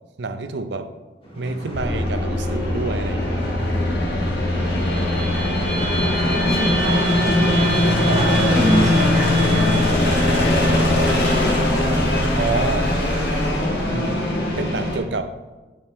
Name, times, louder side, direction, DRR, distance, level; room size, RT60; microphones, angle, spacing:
voice 1, 0.2-1.0 1.3-3.6 8.1-8.3 12.4-13.0 13.9-15.3, right 3 dB, 65° right, 9 dB, 0.5 m, -28 dB
sound 1, 1.2-14.7, equal, 30° left, 1.6 m, -36 dB
sound 2, 1.7-15.0, left 1 dB, 60° left, 1.5 m, -20 dB
sound 3, 4.7-11.3, right 3 dB, 10° left, 1.9 m, -29 dB
voice 2, 6.3-11.5, equal, 20° right, -5 dB, 2.1 m, -27 dB
7.3 x 5.0 x 4.2 m, 1.2 s
head